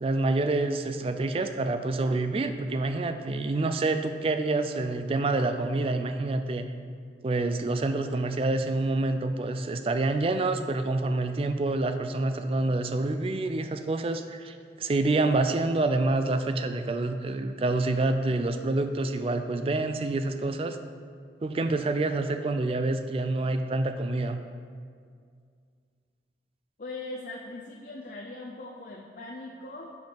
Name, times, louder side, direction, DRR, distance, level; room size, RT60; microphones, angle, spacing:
voice 1, 0.0-6.7 7.2-20.8 21.4-24.4, right 2 dB, 30° right, 8 dB, 0.3 m, -27 dB
voice 2, 26.8-30.0, left 2 dB, 45° left, -1 dB, 0.5 m, -40 dB
5.3 x 5.3 x 5.8 m, 2.2 s
head